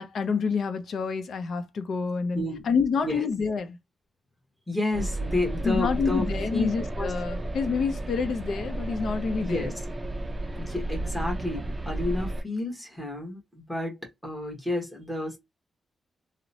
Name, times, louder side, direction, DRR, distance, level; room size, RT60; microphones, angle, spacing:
voice 1, 0.0-3.8 5.6-9.7, left 5 dB, 70° left, 0.5 m, -28 dB
voice 2, 4.7-6.7 7.0-7.1 9.4-9.7 10.5-15.4, left 2 dB, 5° left, 1.1 m, -31 dB
sound 1, 4.9-12.4, right 1 dB, 20° right, 0.4 m, -32 dB
2.8 x 2.0 x 2.6 m
wide cardioid pair, 145°, 0 cm